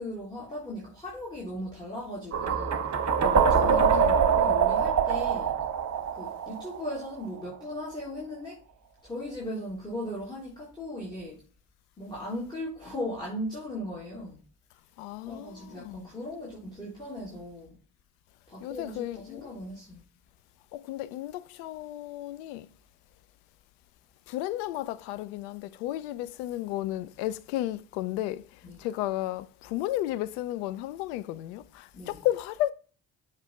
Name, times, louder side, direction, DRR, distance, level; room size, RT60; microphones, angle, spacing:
voice 1, 0.0-5.7 6.1-8.6 9.0-11.4 12.0-14.4 15.3-17.8 18.5-20.0 28.6-28.8 31.9-32.3, left 1 dB, 10° left, 3.5 m, -38 dB
sound 1, 2.3-7.2, right 6 dB, 40° right, 1.1 m, -24 dB
voice 2, 3.6-4.5 15.0-16.1 18.6-19.4 20.7-22.7 24.3-32.7, left 14 dB, 75° left, 0.6 m, -33 dB
7.3 x 3.4 x 5.5 m
hypercardioid pair, 45°, 46 cm